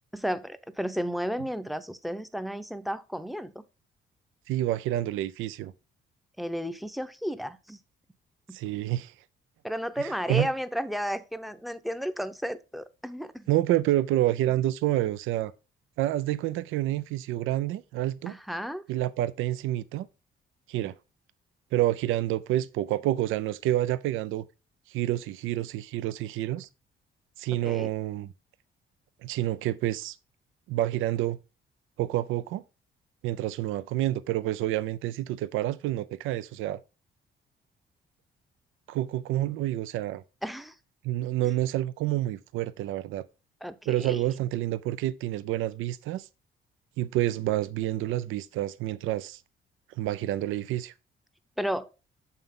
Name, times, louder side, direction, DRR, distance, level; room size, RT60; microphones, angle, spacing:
voice 1, 0.1-3.6 6.4-7.8 8.5-8.6 9.6-13.5 18.3-18.8 27.6-27.9 40.4-40.7 43.6-44.2 51.6-51.9, equal, ahead, 0.6 m, -33 dB
voice 2, 4.5-5.7 8.5-9.1 10.0-10.5 13.5-15.5 16.0-18.3 18.9-20.1 20.7-20.9 21.7-24.5 24.9-26.7 27.4-28.3 29.2-30.1 30.7-31.4 32.0-32.6 33.2-36.8 38.9-40.2 41.0-43.2 43.9-46.3 47.0-49.4 50.0-50.9, right 14 dB, 90° right, 0.4 m, -28 dB
7.0 x 5.7 x 3.6 m
cardioid pair, 90°, 20 cm